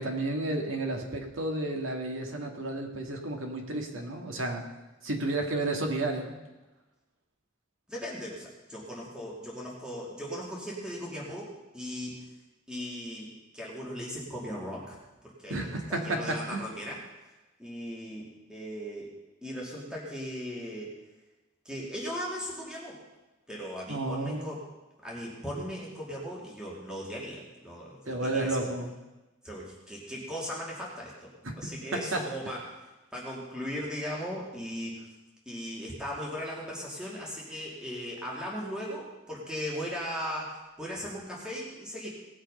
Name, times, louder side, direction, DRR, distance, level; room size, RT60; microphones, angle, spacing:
voice 1, 0.0-4.6 5.0-6.4 15.5-16.7 23.9-24.5 28.1-28.9 31.4-32.2, right 2 dB, 80° right, 2 dB, 2.0 m, -32 dB
voice 2, 7.9-12.2 12.7-13.3 13.5-15.0 15.2-17.0 17.6-19.1 19.4-20.9 21.6-23.0 23.5-24.6 25.0-28.7 29.4-31.3 31.6-32.6 33.1-35.1 35.5-42.1, equal, 5° right, -5 dB, 2.7 m, -38 dB
18.5 x 6.4 x 5.5 m, 1.1 s
head